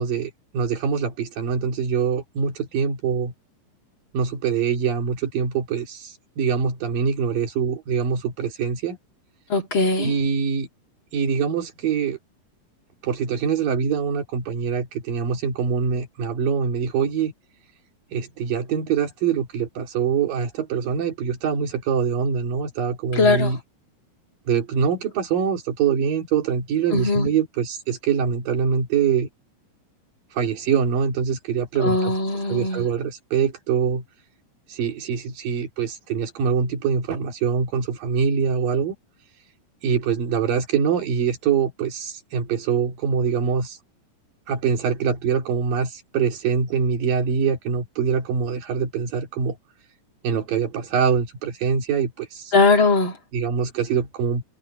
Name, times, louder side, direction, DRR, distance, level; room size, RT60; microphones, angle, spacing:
voice 1, 0.0-3.3 4.1-9.0 10.0-10.7 11.1-12.2 13.0-17.3 18.1-23.6 24.5-29.3 30.3-32.1 32.5-34.0 34.7-38.9 39.8-43.8 44.5-49.6 50.2-52.5 53.3-54.4, right 6 dB, 90° right, 4.6 m, -24 dB
voice 2, 9.5-10.1 23.2-23.5 26.9-27.3 31.8-32.8 52.5-53.2, left 3 dB, 40° left, 2.7 m, -20 dB
omnidirectional pair, 3.8 m